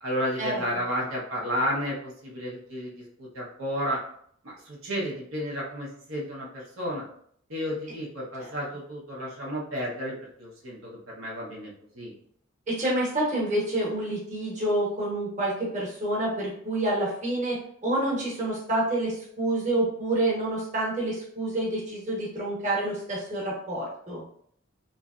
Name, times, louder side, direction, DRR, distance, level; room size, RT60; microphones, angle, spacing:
voice 1, 0.0-4.0 4.4-7.0 7.5-12.1, equal, 90° right, -4 dB, 1.0 m, -32 dB
voice 2, 12.7-24.2, right 1 dB, 40° right, -5 dB, 1.0 m, -28 dB
3.1 x 2.6 x 2.4 m, 0.63 s
head